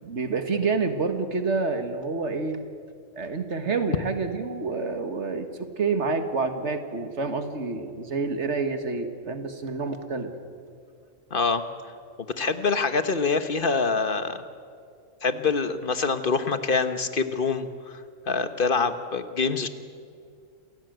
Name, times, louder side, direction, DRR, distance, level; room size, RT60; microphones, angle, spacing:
voice 1, 0.0-2.6 3.2-10.3, right 4 dB, 60° right, 8 dB, 1.9 m, -28 dB
voice 2, 11.3-11.6 12.4-14.4 15.2-19.7, left 4 dB, 45° left, 10 dB, 1.3 m, -25 dB
28.0 x 16.5 x 9.2 m, 2.3 s
omnidirectional pair, 1.3 m